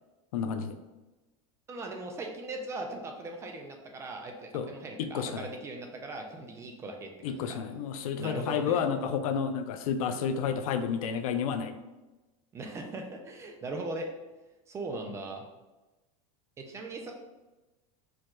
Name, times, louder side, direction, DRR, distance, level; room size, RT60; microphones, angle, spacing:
voice 1, 0.3-0.7 4.5-4.7 5.0-5.5 7.2-11.7, left 7 dB, 85° left, 9 dB, 0.5 m, -30 dB
voice 2, 1.7-7.6 8.2-8.9 12.5-14.1 14.7-15.5 16.6-17.1, right 2 dB, 15° right, 3 dB, 0.4 m, -39 dB
4.6 x 2.3 x 4.4 m, 1.1 s
supercardioid pair, 160°, 18 cm